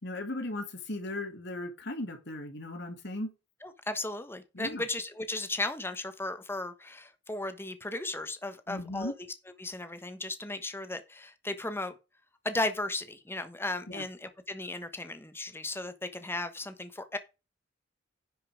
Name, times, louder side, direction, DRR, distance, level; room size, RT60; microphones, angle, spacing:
voice 1, 0.0-3.3 4.5-4.8 8.7-9.1 13.9-14.0, left 1 dB, 60° left, 2.6 m, -37 dB
voice 2, 3.6-9.1 9.6-11.9 12.4-17.2, left 2 dB, 10° left, 1.1 m, -35 dB
10.5 x 5.4 x 4.9 m
head